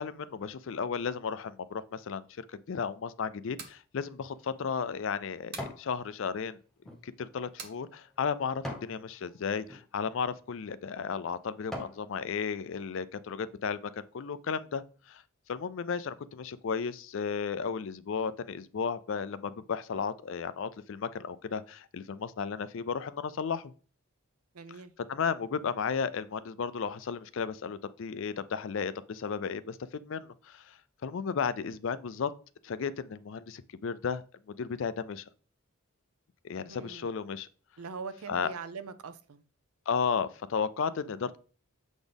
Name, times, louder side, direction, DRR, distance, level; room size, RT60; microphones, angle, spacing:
voice 1, 0.0-2.3 2.7-6.6 7.0-15.2 15.5-23.7 25.1-32.3 32.6-34.2 34.5-35.2 36.4-37.5 38.3-38.5 39.9-41.4, left 6 dB, 60° left, 0.4 m, -34 dB
sound 1, 3.5-3.8 5.5-5.8 7.6-7.8, right 5 dB, 45° right, 1.0 m, -44 dB
sound 2, 4.1-5.9 6.4-9.0 9.6-9.8 10.5-10.7 11.2-12.1 12.5-12.6, left 1 dB, ahead, 0.9 m, -44 dB
voice 2, 24.5-24.9 36.5-37.1 37.8-39.4, right 5 dB, 85° right, 0.6 m, -42 dB
7.1 x 4.1 x 3.4 m
head